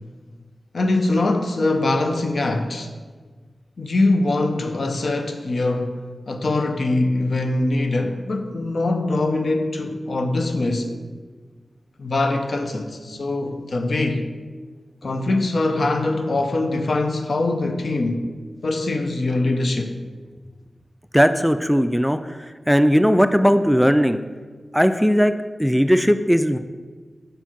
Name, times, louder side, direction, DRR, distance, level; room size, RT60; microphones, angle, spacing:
voice 1, 0.7-2.9 3.8-11.0 12.0-14.3 15.0-18.3 18.6-20.0, left 2 dB, 70° left, 0.6 m, -23 dB
voice 2, 21.1-24.2 24.7-25.3 25.6-26.6, equal, ahead, 0.3 m, -18 dB
5.2 x 4.5 x 5.8 m
cardioid pair, 40°, 0 cm